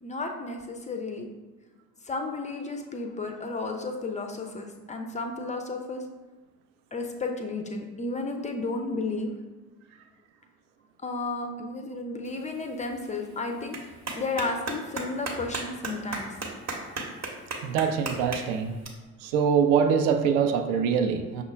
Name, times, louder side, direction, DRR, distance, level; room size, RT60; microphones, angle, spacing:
voice 1, 0.0-1.3 2.1-6.0 6.9-9.3 11.0-13.8 14.2-16.3, left 3 dB, 20° left, 4 dB, 0.3 m, -33 dB
Clapping, 12.2-18.9, right 3 dB, 40° right, 0.9 m, -37 dB
voice 2, 17.6-18.8 19.2-21.4, right 7 dB, 60° right, 6 dB, 0.5 m, -24 dB
5.8 x 2.1 x 3.3 m, 1.2 s
figure-of-eight pair, 45°, 44 cm